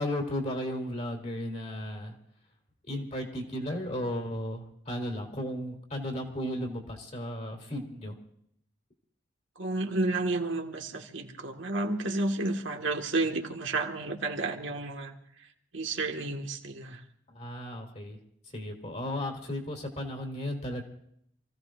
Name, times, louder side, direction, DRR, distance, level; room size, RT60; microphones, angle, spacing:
voice 1, 0.0-2.2 2.8-8.2 17.3-18.2 18.5-20.8, left 1 dB, 35° left, 1 dB, 3.1 m, -35 dB
voice 2, 9.6-15.5 15.7-17.0, right 2 dB, 75° right, 2 dB, 1.8 m, -31 dB
28.5 x 16.0 x 2.6 m, 0.72 s
head